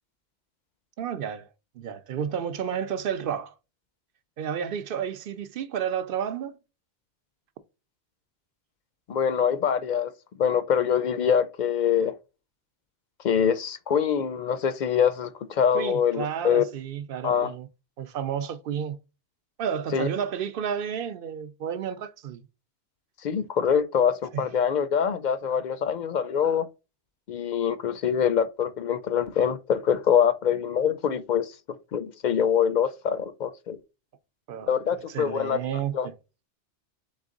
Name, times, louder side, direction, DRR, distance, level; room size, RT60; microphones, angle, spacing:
voice 1, 1.0-1.5 1.8-3.5 4.4-6.6 15.7-17.7 18.0-19.0 19.6-22.5 24.3-24.4 34.5-34.7 35.1-36.1, right 8 dB, 60° right, 0.7 m, -31 dB
voice 2, 9.1-10.1 10.4-12.1 13.2-16.6 17.2-17.5 19.9-20.1 23.2-26.7 27.3-31.6 31.9-33.8 34.7-35.6 35.9-36.1, left 8 dB, 55° left, 0.5 m, -24 dB
4.0 x 3.5 x 3.8 m
omnidirectional pair, 1.1 m